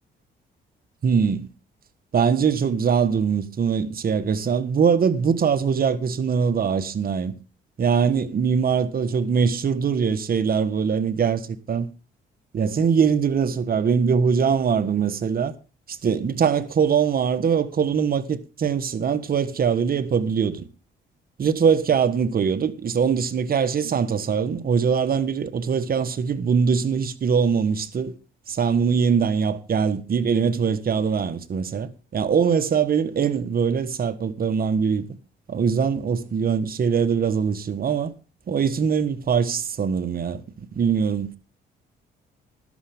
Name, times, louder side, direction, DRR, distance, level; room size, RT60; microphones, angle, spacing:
voice 1, 1.0-1.5 2.1-7.3 7.8-11.9 12.5-15.5 15.9-20.7 21.4-28.2 28.5-35.1 35.5-38.1 38.5-41.4, right 6 dB, 50° right, 1.3 m, -22 dB
14.0 x 11.5 x 3.6 m
cardioid pair, 90°, 20 cm